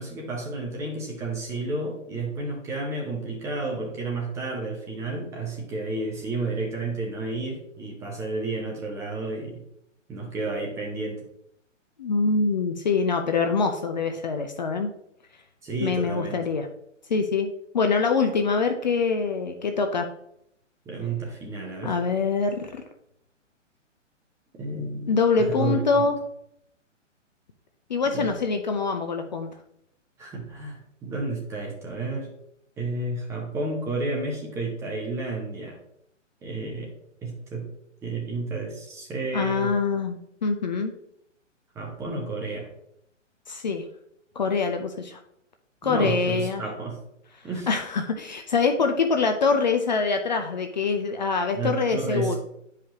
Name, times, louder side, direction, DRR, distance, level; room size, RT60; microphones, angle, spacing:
voice 1, 0.0-9.6 10.1-11.2 15.6-16.4 20.9-21.9 24.6-25.1 25.4-26.0 28.1-28.3 30.2-32.3 32.8-35.8 36.4-36.9 37.2-37.7 38.0-39.7 41.8-42.7 45.8-47.0 47.4-47.7 51.5-52.4, right 3 dB, 5° right, -1 dB, 0.7 m, -31 dB
voice 2, 12.0-14.9 15.8-16.7 17.1-17.5 17.7-20.1 21.8-22.8 25.1-26.2 27.9-29.5 39.3-40.9 43.5-43.8 44.4-45.2 45.8-46.6 47.7-52.4, left 4 dB, 35° left, 5 dB, 0.6 m, -24 dB
9.8 x 4.9 x 2.8 m, 0.75 s
figure-of-eight pair, 125°, 38 cm